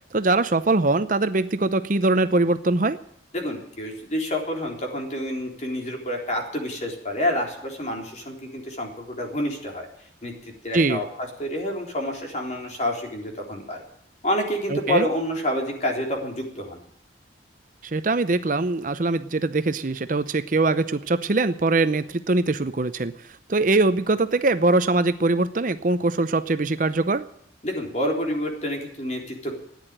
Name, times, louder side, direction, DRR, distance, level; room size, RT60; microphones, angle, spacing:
voice 1, 0.1-3.0 10.7-11.0 14.7-15.1 17.8-23.1 23.5-27.3, right 2 dB, 45° right, 11 dB, 0.7 m, -22 dB
voice 2, 3.3-9.9 10.2-13.8 14.2-16.8 27.6-29.5, left 1 dB, 40° left, 1 dB, 3.8 m, -28 dB
14.0 x 10.0 x 9.0 m, 0.69 s
head